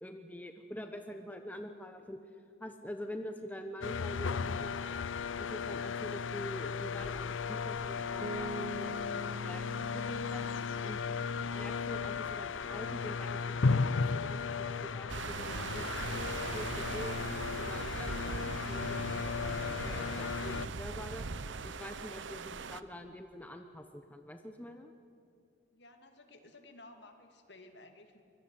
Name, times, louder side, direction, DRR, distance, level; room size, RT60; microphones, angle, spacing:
voice 1, 0.0-2.2 2.6-4.9 5.4-10.4 10.8-11.0 11.5-17.2 17.5-24.9, left 1 dB, 10° left, 6 dB, 1.0 m, -46 dB
sound 1, 3.8-20.7, left 5 dB, 75° left, 0.6 m, -35 dB
Bass guitar, 8.2-12.1, right 1 dB, 40° right, 2.5 m, -45 dB
sound 2, 15.1-22.8, right 4 dB, 70° right, 0.8 m, -40 dB
voice 2, 25.7-28.2, left 2 dB, 60° left, 5 dB, 2.6 m, -55 dB
24.5 x 22.5 x 9.7 m, 2.5 s
head